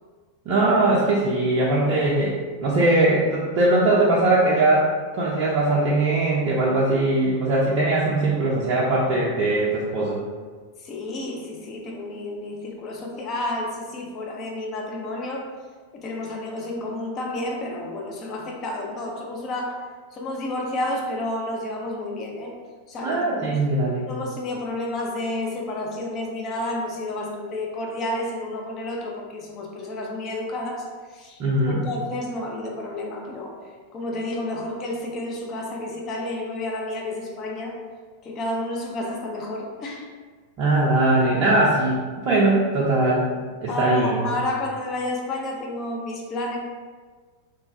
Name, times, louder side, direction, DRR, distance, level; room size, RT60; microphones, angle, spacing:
voice 1, 0.5-4.9 5.1-10.2 23.0-24.1 31.4-31.8 40.6-42.0 42.2-43.2 43.6-44.3, right 2 dB, 40° right, -6 dB, 0.5 m, -20 dB
voice 2, 10.8-15.5 15.9-19.8 20.1-22.5 22.9-23.6 24.1-31.4 31.7-33.5 33.9-37.8 38.2-40.1 43.7-46.6, left 1 dB, 30° left, 0 dB, 0.5 m, -30 dB
3.0 x 2.2 x 2.7 m, 1.5 s
figure-of-eight pair, 90°, 0 cm